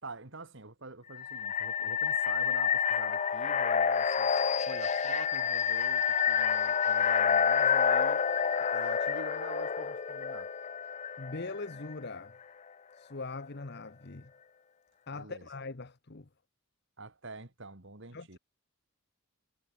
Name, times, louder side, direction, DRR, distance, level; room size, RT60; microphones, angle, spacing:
voice 1, 0.0-4.3 4.7-8.2 8.7-10.5 15.1-15.5 17.0-18.4, right 3 dB, 55° right, 2.1 m, -46 dB
sound 1, 1.1-11.9, left 7 dB, 30° left, 0.4 m, -28 dB
voice 2, 11.2-12.3 12.9-14.3 15.1-16.3 18.1-18.4, left 3 dB, 50° left, 1.0 m, -41 dB
head